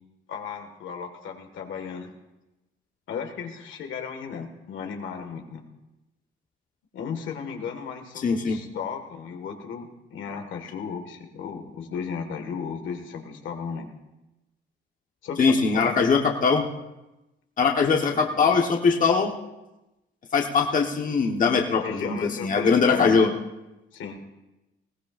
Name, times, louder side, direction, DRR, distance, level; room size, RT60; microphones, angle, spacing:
voice 1, 0.3-2.1 3.1-5.6 6.9-13.9 15.2-16.2 18.0-18.5 21.8-23.3 23.9-24.2, left 6 dB, 75° left, 4 dB, 1.7 m, -35 dB
voice 2, 8.2-8.6 15.4-16.7 17.6-19.3 20.3-23.3, left 5 dB, 40° left, 1 dB, 1.2 m, -21 dB
20.0 x 16.0 x 2.5 m, 0.99 s
cardioid pair, 90°, 20 cm